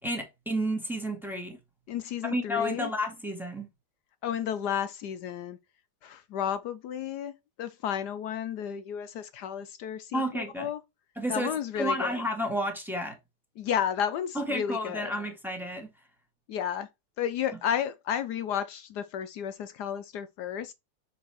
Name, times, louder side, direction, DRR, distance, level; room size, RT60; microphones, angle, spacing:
voice 1, 0.0-1.6 2.2-3.7 10.1-10.7 11.1-13.2 14.3-15.9, equal, ahead, 1.7 m, -31 dB
voice 2, 1.9-2.9 4.2-5.6 6.0-7.3 7.6-10.8 11.3-12.2 13.6-15.1 16.5-16.9 17.2-20.7, left 9 dB, 75° left, 0.9 m, -32 dB
6.7 x 4.8 x 3.0 m
omnidirectional pair, 2.3 m